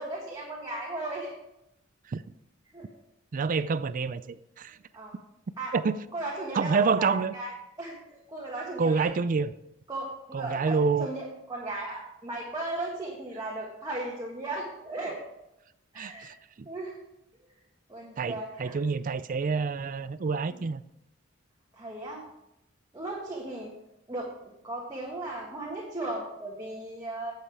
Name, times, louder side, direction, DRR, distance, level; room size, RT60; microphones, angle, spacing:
voice 1, 0.0-1.3 2.7-2.9 4.9-5.1 5.6-5.7 6.1-7.5 7.8-9.1 9.9-15.2 15.9-16.3 16.6-16.9 17.9-18.8 20.5-20.6 21.7-22.2 22.9-23.7 24.1-24.3 24.6-27.3, right 2 dB, 20° right, 1.6 m, -36 dB
voice 2, 3.3-4.8 5.7-6.0 6.5-7.3 8.8-9.5 10.3-11.1 16.0-16.7 18.2-20.8, right 5 dB, 45° right, 0.4 m, -28 dB
10.0 x 7.8 x 4.8 m
head